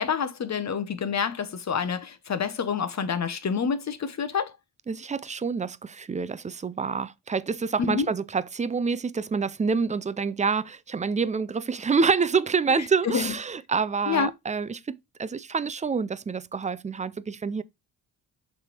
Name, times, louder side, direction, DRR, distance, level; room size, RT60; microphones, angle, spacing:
voice 1, 0.0-4.5 7.8-8.1 12.7-13.3 14.1-14.3, left 6 dB, 45° left, 1.0 m, -28 dB
voice 2, 4.9-17.6, right 5 dB, 20° right, 0.4 m, -27 dB
6.4 x 3.5 x 4.4 m
cardioid pair, 90°, 39 cm